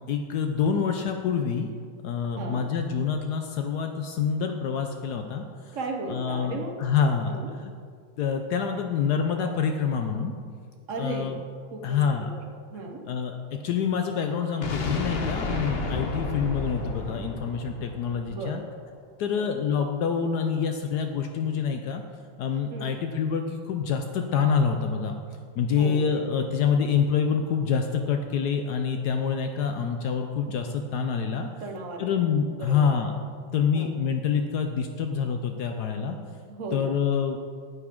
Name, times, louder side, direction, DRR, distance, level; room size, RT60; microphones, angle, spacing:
voice 1, 0.1-1.7 2.0-5.4 6.1-7.7 8.2-10.3 11.0-11.4 11.8-12.3 13.0-18.6 19.2-22.0 22.4-25.1 25.6-31.5 32.0-33.1 33.5-36.2 36.7-37.4, left 6 dB, 75° left, 5 dB, 1.0 m, -26 dB
voice 2, 5.7-6.8 7.3-7.5 10.9-11.3 11.7-12.4 12.7-13.1 18.2-18.6 19.2-19.5 22.7-22.9 25.8-26.1 26.4-26.5 31.6-32.2 32.6-32.9 33.7-33.9 36.5-36.9, right 3 dB, 50° right, 2 dB, 1.0 m, -36 dB
sound 1, 14.6-18.6, left 2 dB, 55° left, 0.7 m, -31 dB
9.4 x 8.3 x 3.6 m, 2.1 s
omnidirectional pair, 2.2 m